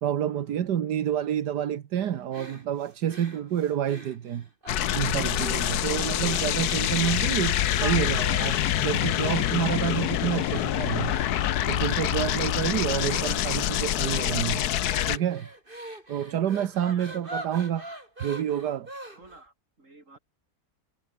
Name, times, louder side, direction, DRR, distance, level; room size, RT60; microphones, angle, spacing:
voice 1, 0.0-4.5 4.9-11.2 11.7-14.6 15.1-15.5 16.1-17.8 18.2-18.9, right 10 dB, 80° right, 1.7 m, -28 dB
sound 1, 2.3-5.0 5.4-5.9 6.2-6.5 7.0-7.3 7.7-19.4, right 1 dB, 30° right, 7.0 m, -43 dB
sound 2, 4.7-15.2, left 12 dB, 70° left, 1.3 m, -26 dB
voice 2, 16.6-17.3 19.1-20.2, right 2 dB, 45° right, 5.5 m, -54 dB
omnidirectional pair, 1.8 m